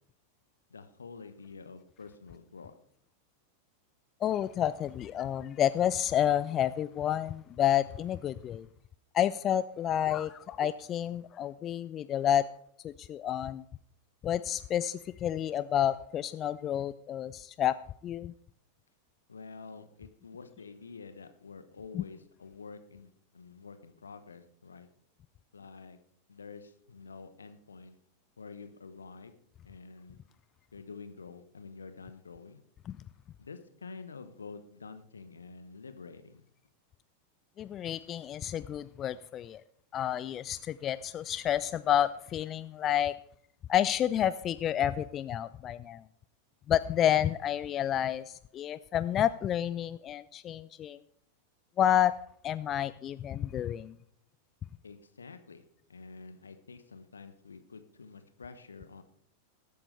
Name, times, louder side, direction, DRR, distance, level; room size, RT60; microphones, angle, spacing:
voice 1, 0.7-2.7 19.3-24.9 25.5-26.0 26.3-28.0 28.4-29.3 29.6-30.2 30.7-32.6 33.4-36.4 54.8-55.6 55.9-59.0, left 4 dB, 75° left, 10 dB, 1.0 m, -48 dB
voice 2, 4.2-8.7 9.1-12.4 12.8-13.6 14.2-17.7 18.0-18.3 21.9-22.0 32.9-33.0 37.6-39.6 39.9-43.1 43.7-46.0 46.7-51.0 51.8-52.1 52.4-54.0, left 10 dB, 30° left, 14 dB, 0.3 m, -30 dB
20.0 x 8.5 x 3.3 m, 0.65 s
figure-of-eight pair, 90°, 0 cm